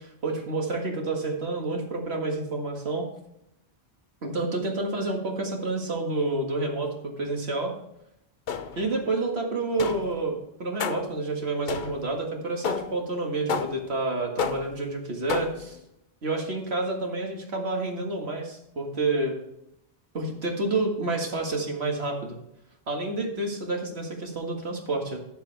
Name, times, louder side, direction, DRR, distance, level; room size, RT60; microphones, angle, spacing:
voice 1, 0.0-3.1 4.2-7.7 8.8-15.8 16.2-19.4 20.1-22.4 22.9-25.2, right 2 dB, 85° right, 1 dB, 2.1 m, -29 dB
sound 1, 8.5-9.0 9.8-10.2 10.8-11.2 11.7-12.1 12.6-13.1 13.5-14.0 14.4-14.8 15.3-15.7, left 6 dB, 55° left, 0.7 m, -31 dB
12.5 x 6.9 x 3.4 m, 0.79 s
omnidirectional pair, 1.1 m